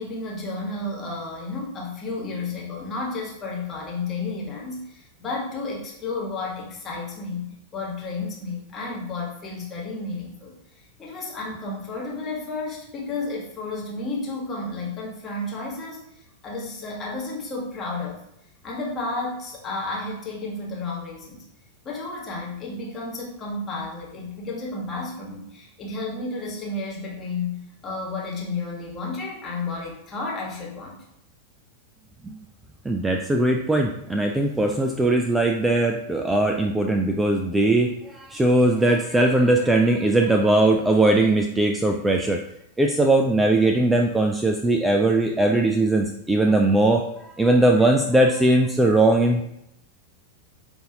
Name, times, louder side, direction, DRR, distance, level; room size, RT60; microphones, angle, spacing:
voice 1, 0.0-18.2 18.6-21.4 21.8-31.0, left 3 dB, 25° left, -3 dB, 1.3 m, -32 dB
voice 2, 32.9-42.4 42.8-49.4, right 2 dB, 10° right, 2 dB, 0.3 m, -20 dB
5.5 x 2.6 x 2.8 m, 0.80 s
figure-of-eight pair, 90°, 0 cm